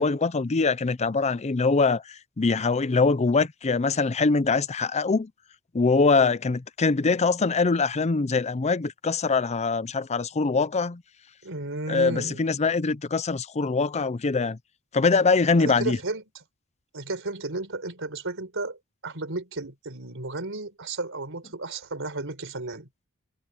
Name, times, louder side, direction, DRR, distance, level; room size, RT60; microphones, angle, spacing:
voice 1, 0.0-2.0 2.4-5.3 5.7-11.0 11.9-14.6 14.9-16.0, left 4 dB, 30° left, 0.5 m, -23 dB
voice 2, 11.4-12.4 15.6-16.2 16.9-18.8 19.0-22.9, right 2 dB, 65° right, 4.5 m, -33 dB
head